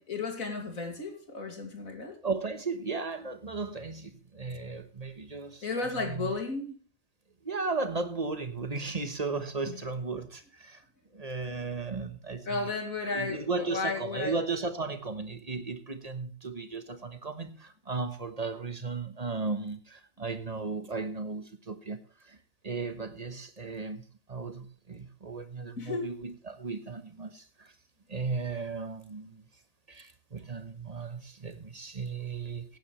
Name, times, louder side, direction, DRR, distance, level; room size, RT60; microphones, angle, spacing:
voice 1, 0.0-2.2 5.6-6.8 9.7-9.8 12.5-14.4 25.8-26.1, left 3 dB, 80° left, 3.0 m, -34 dB
voice 2, 2.2-5.6 5.9-6.3 7.4-10.8 11.1-12.7 13.1-22.0 22.2-22.4 22.6-27.7 28.1-29.4 29.9-32.8, right 4 dB, 30° right, 1.3 m, -35 dB
17.0 x 9.6 x 3.3 m
omnidirectional pair, 1.4 m